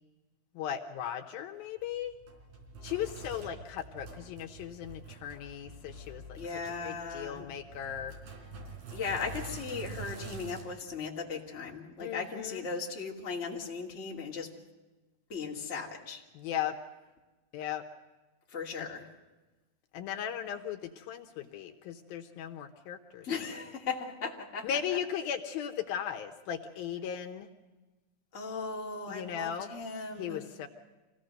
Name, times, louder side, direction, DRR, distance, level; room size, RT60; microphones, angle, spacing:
voice 1, 0.5-2.1 2.8-6.4 6.8-8.1 12.0-12.7 16.3-16.7 17.5-17.8 18.8-18.9 19.9-23.3 24.6-27.5 29.1-29.7 30.2-30.7, left 9 dB, 75° left, 4 dB, 2.7 m, -37 dB
Sink (filling or washing), 1.8-10.6, right 3 dB, 70° right, 5.6 m, -46 dB
voice 2, 6.4-7.5 8.9-14.5 15.3-16.2 18.5-19.1 23.2-24.7 28.3-30.5, left 5 dB, 20° left, -2 dB, 2.3 m, -37 dB
26.0 x 17.0 x 6.6 m, 1.1 s
omnidirectional pair, 4.4 m